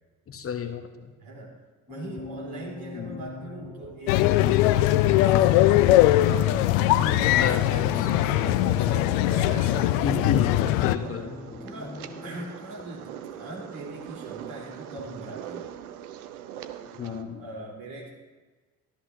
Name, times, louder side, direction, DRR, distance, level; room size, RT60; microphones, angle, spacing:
voice 1, 0.3-1.1 2.9-3.2 7.3-8.1 10.0-11.3 17.0-17.4, left 6 dB, 30° left, 7 dB, 1.1 m, -32 dB
voice 2, 1.2-1.6 1.9-5.8 6.2-10.0 11.0-11.3 11.6-15.7 17.0-18.1, right 1 dB, 50° right, -3 dB, 3.8 m, -41 dB
sound 1, 1.9-12.5, left 3 dB, 15° left, 0.7 m, -43 dB
sound 2, 4.1-11.0, left 14 dB, 60° left, 0.5 m, -21 dB
sound 3, 5.3-17.2, right 10 dB, 70° right, 0.7 m, -43 dB
13.5 x 13.0 x 2.7 m, 1.3 s
figure-of-eight pair, 55°, 45 cm